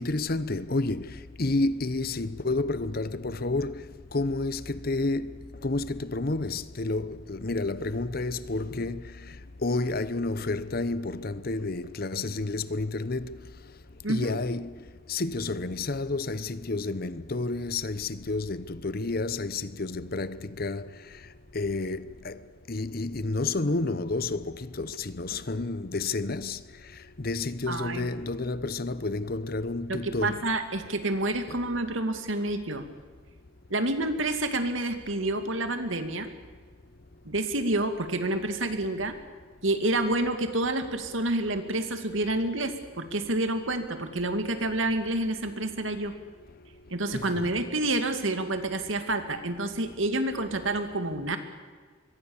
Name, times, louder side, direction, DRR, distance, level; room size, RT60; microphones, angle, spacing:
voice 1, 0.0-13.3 14.1-21.2 21.5-22.4 22.7-30.4 31.5-31.6 47.1-47.5, left 2 dB, 50° left, 0.9 m, -30 dB
voice 2, 27.7-28.1 29.9-32.8 33.7-36.3 37.3-39.1 39.6-46.1 46.9-51.4, right 2 dB, 80° right, 2.4 m, -28 dB
25.0 x 22.5 x 7.2 m
head